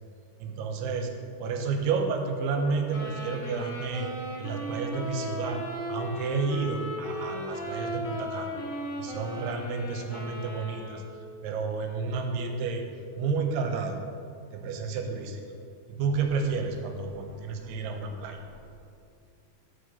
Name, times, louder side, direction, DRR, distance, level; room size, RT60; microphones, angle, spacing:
voice 1, 0.4-1.1 1.4-4.1 4.4-5.6 5.9-8.6 9.0-11.0 11.4-12.8 13.2-14.0 14.5-15.4 15.9-18.4, right 4 dB, 90° right, 4 dB, 2.8 m, -31 dB
sound 1, 2.9-11.3, equal, 90° left, 1.3 m, -36 dB
voice 2, 17.1-18.7, left 4 dB, 75° left, -6 dB, 1.5 m, -53 dB
6.4 x 5.8 x 6.6 m, 2.3 s
omnidirectional pair, 4.7 m